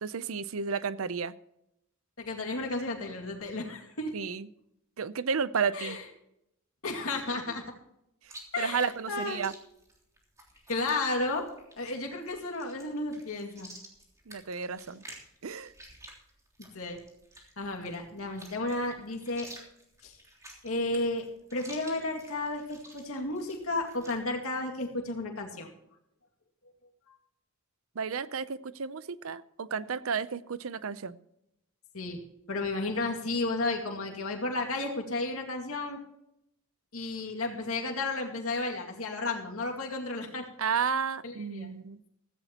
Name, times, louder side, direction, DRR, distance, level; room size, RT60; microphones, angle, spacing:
voice 1, 0.0-1.3 4.1-4.5 5.0-6.0 8.6-9.5 14.3-15.0 15.4-15.7 28.0-31.2 40.6-42.0, right 6 dB, 75° right, 16 dB, 0.6 m, -32 dB
voice 2, 2.2-4.1 5.7-6.0 6.8-7.6 8.5-9.4 10.7-11.4 11.8-13.7 16.7-17.0 17.6-19.5 20.0-20.2 20.6-21.3 21.5-25.7 31.9-32.2 32.5-36.0 36.9-40.5 41.2-41.7, left 2 dB, 85° left, 1 dB, 2.2 m, -33 dB
Chewing mastication, 8.2-24.2, right 1 dB, 15° right, 3.2 m, -52 dB
16.0 x 15.0 x 3.0 m, 0.80 s
head